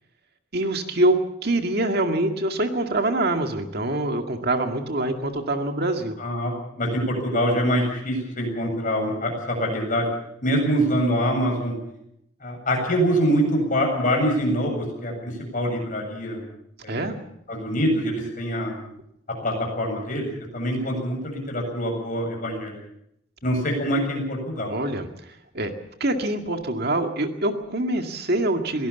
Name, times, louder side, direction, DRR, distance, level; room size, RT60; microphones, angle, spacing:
voice 1, 0.5-6.1 16.9-17.2 24.7-25.7 26.0-28.9, right 1 dB, 50° right, 5 dB, 2.1 m, -25 dB
voice 2, 6.2-10.1 10.4-11.7 12.4-16.4 16.8-17.1 17.5-18.7 19.4-22.7 23.4-24.8, equal, 40° left, 1 dB, 7.7 m, -24 dB
23.0 x 17.5 x 7.1 m, 0.76 s
head